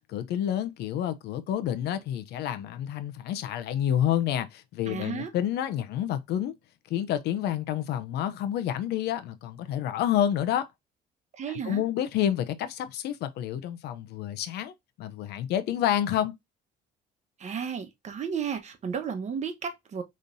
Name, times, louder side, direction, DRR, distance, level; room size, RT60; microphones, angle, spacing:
voice 1, 0.1-6.5 6.9-10.7 11.5-16.3, left 11 dB, 75° left, 0.7 m, -29 dB
voice 2, 4.8-5.3 11.4-11.8 17.4-20.0, right 7 dB, 45° right, 1.1 m, -33 dB
5.3 x 3.2 x 2.6 m
cardioid pair, 110°, 17 cm